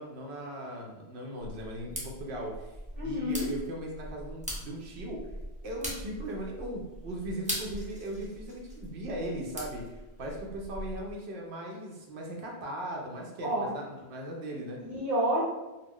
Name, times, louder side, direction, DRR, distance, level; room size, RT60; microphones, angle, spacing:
voice 1, 0.0-2.7 3.0-5.2 5.6-14.8, right 1 dB, 85° right, -1 dB, 0.9 m, -38 dB
sound 1, 1.4-11.1, equal, 10° right, 0.4 m, -41 dB
voice 2, 3.0-3.5 13.4-13.7 14.8-15.4, equal, 45° right, -8 dB, 0.8 m, -29 dB
2.4 x 2.1 x 3.5 m, 1.1 s
omnidirectional pair, 1.1 m